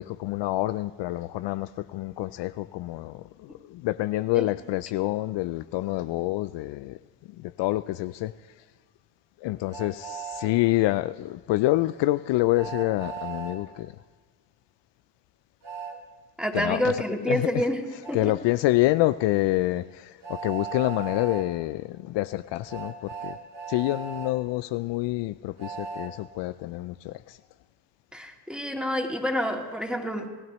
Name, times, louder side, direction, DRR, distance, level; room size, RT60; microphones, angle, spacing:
voice 1, 0.0-7.0 7.4-8.3 9.4-13.9 16.5-17.6 18.1-23.4 23.7-27.4, left 17 dB, 65° left, 14 dB, 0.5 m, -27 dB
Train, 9.7-10.5 12.5-13.6 15.6-16.0 18.0-18.2 20.2-21.4 22.7-24.3 25.6-26.1, right 6 dB, 45° right, 2.9 m, -37 dB
voice 2, 16.4-18.3 28.1-30.3, equal, ahead, 2 dB, 2.6 m, -28 dB
27.0 x 15.5 x 3.1 m, 1.4 s
hypercardioid pair, 55°, 45 cm